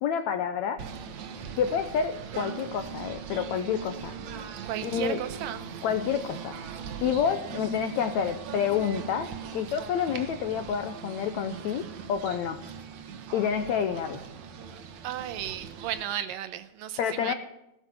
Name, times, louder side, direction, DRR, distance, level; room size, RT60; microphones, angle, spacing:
voice 1, 0.0-0.8 1.6-4.1 4.8-5.2 5.8-6.6 7.0-11.8 12.1-12.6 13.3-14.2 17.0-17.3, left 8 dB, 85° left, 9 dB, 1.6 m, -28 dB
Singing / Bird, 0.8-16.0, right 7 dB, 60° right, 2.1 m, -40 dB
voice 2, 4.7-5.6 15.0-17.3, right 11 dB, 80° right, 11 dB, 2.1 m, -34 dB
16.5 x 7.8 x 7.9 m, 0.89 s
omnidirectional pair, 4.4 m